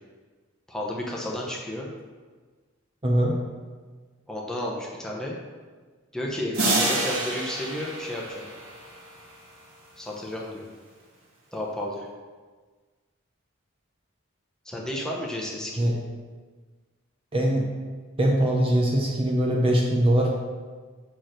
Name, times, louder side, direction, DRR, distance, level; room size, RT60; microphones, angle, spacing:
voice 1, 0.7-1.9 4.3-5.4 6.1-8.4 10.0-10.7 11.5-12.1 14.6-15.9, left 1 dB, 5° left, -3 dB, 1.0 m, -32 dB
voice 2, 3.0-3.3 15.8-15.9 17.3-17.7 18.2-20.3, right 1 dB, 25° right, -1 dB, 0.8 m, -22 dB
sound 1, 6.5-9.3, right 2 dB, 75° right, 1.7 m, -28 dB
5.9 x 4.7 x 6.5 m, 1.4 s
head